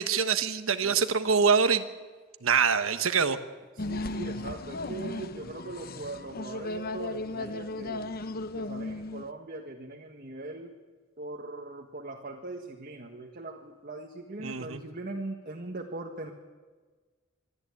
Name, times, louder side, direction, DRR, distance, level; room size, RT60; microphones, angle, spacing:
voice 1, 0.0-1.8 2.4-3.4 14.4-14.8, right 6 dB, 85° right, 10 dB, 1.2 m, -24 dB
voice 2, 3.7-8.1 8.5-10.8 11.2-16.3, right 2 dB, 45° right, 2 dB, 1.6 m, -40 dB
sound 1, 3.8-9.3, left 2 dB, 45° left, 0.9 m, -36 dB
24.0 x 13.5 x 8.5 m, 1.4 s
head